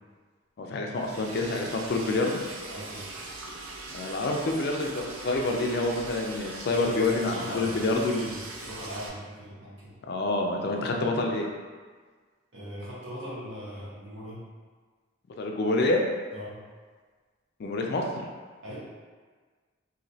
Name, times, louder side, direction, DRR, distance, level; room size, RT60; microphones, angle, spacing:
voice 1, 0.6-2.4 3.9-8.3 10.1-11.5 15.4-16.1 17.6-18.0, left 2 dB, 50° left, 1 dB, 0.3 m, -27 dB
Liquid, 0.9-9.1, right 3 dB, 85° right, 0.4 m, -41 dB
voice 2, 2.7-3.0 6.7-9.9 12.5-14.4 16.3-16.6 18.6-18.9, equal, 60° right, -8 dB, 1.1 m, -39 dB
3.0 x 2.7 x 2.7 m, 1.5 s
head